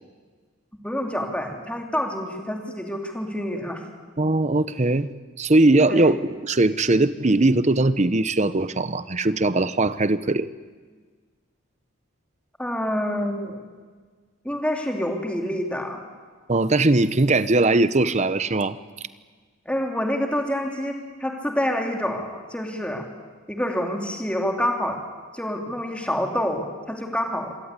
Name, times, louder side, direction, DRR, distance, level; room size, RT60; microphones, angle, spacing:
voice 1, 0.8-3.8 5.9-6.1 12.6-13.6 14.4-16.0 19.6-23.1 23.5-25.0 25.3-27.5, equal, 5° left, 2 dB, 2.9 m, -27 dB
voice 2, 4.2-5.1 5.4-10.5 16.5-18.8, right 2 dB, 35° right, 14 dB, 0.8 m, -20 dB
26.5 x 17.0 x 9.8 m, 1.5 s
head